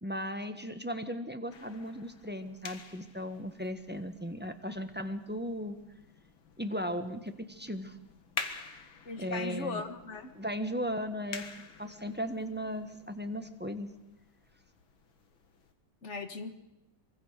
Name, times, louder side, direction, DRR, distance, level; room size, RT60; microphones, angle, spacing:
voice 1, 0.0-5.8 6.6-7.9 9.2-9.8 10.3-11.4 11.8-13.9, equal, 5° right, 8 dB, 1.1 m, -36 dB
sound 1, 1.5-15.7, left 5 dB, 80° left, 2.5 m, -48 dB
voice 2, 9.1-10.3 16.0-16.5, left 3 dB, 35° left, 9 dB, 1.8 m, -38 dB
24.5 x 24.0 x 6.7 m, 0.90 s
omnidirectional pair, 2.2 m